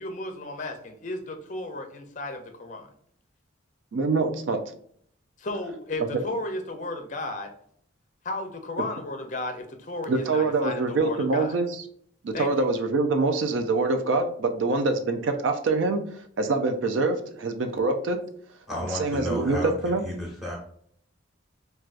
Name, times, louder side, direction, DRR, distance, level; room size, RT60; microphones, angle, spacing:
voice 1, 0.0-2.9 5.4-7.5 8.2-11.6 12.3-12.7, left 2 dB, 40° left, 6 dB, 0.5 m, -34 dB
voice 2, 3.9-4.6 10.1-11.7 12.2-16.0 16.4-18.2 19.0-19.6 19.8-20.0, right 3 dB, 75° right, 6 dB, 0.4 m, -25 dB
voice 3, 18.7-20.5, left 1 dB, ahead, -3 dB, 1.0 m, -32 dB
4.5 x 2.3 x 2.4 m, 0.63 s
head